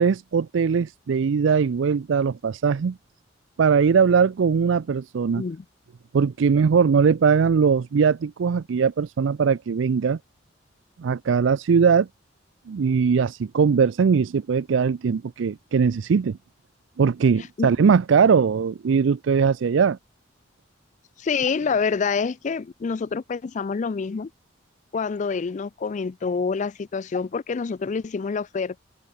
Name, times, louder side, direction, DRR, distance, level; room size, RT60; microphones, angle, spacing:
voice 1, 0.0-3.0 3.6-5.4 6.1-10.2 11.0-12.1 12.7-16.4 17.0-20.0, right 6 dB, 75° right, 0.4 m, -20 dB
voice 2, 21.2-24.3 24.9-28.8, left 5 dB, 40° left, 0.4 m, -27 dB
open air
head